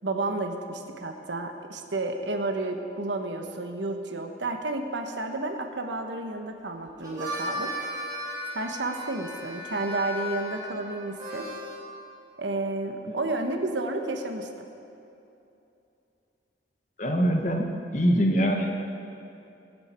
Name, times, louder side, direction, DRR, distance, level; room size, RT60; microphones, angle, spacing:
voice 1, 0.0-7.7 8.5-11.5 12.4-14.5, right 2 dB, 75° right, 5 dB, 1.2 m, -31 dB
Harmonica, 6.9-11.8, equal, 20° right, 3.3 m, -36 dB
voice 2, 17.0-17.7 17.9-18.8, equal, 40° left, 2 dB, 1.4 m, -23 dB
22.5 x 8.9 x 4.5 m, 2.8 s
head